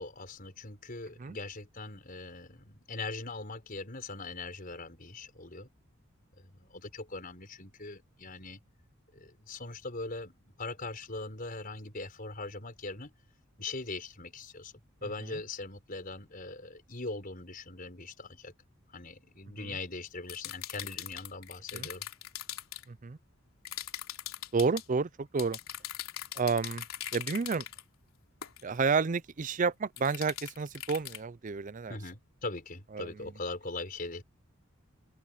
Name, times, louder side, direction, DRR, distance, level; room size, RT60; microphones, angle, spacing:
voice 1, 0.0-5.7 6.4-8.6 9.1-13.1 13.6-14.7 15.0-18.5 18.9-22.0 31.9-34.2, left 3 dB, 40° left, 5.2 m, -41 dB
sound 1, 20.3-22.8 23.7-24.9 25.4-27.8 28.4-28.6 30.0-31.2, left 11 dB, 80° left, 3.4 m, -40 dB
voice 2, 22.9-23.2 24.5-25.6 26.4-26.9 27.1-27.7 28.6-32.0 32.9-33.1, right 5 dB, 40° right, 0.5 m, -30 dB
open air
head